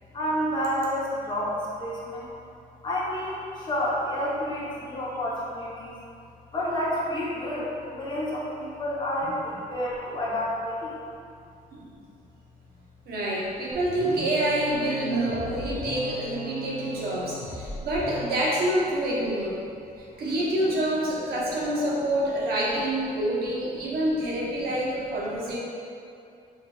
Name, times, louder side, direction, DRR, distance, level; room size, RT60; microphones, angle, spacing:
voice 1, 0.1-2.3 2.8-6.0 6.5-11.0, equal, 30° left, -7 dB, 0.9 m, -29 dB
voice 2, 13.1-19.6 20.0-25.6, right 1 dB, 80° right, -5 dB, 0.9 m, -27 dB
sound 1, 13.7-18.6, left 1 dB, 75° left, 0.7 m, -38 dB
5.5 x 2.6 x 2.3 m, 2.5 s
cardioid pair, 145°, 15 cm